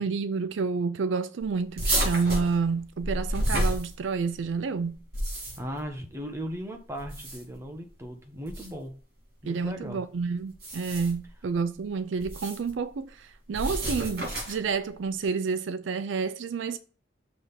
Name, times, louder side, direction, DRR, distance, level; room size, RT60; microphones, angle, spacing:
voice 1, 0.0-5.0 9.4-16.8, right 5 dB, 70° right, 0.4 m, -29 dB
sound 1, 1.8-4.4 5.0-5.8 6.9-7.6 8.5-8.7 10.5-11.3 12.2-12.7 13.5-14.7, right 1 dB, 50° right, 3.6 m, -30 dB
voice 2, 5.6-8.9 9.4-10.0, equal, 15° right, 1.0 m, -37 dB
6.4 x 3.4 x 5.6 m
head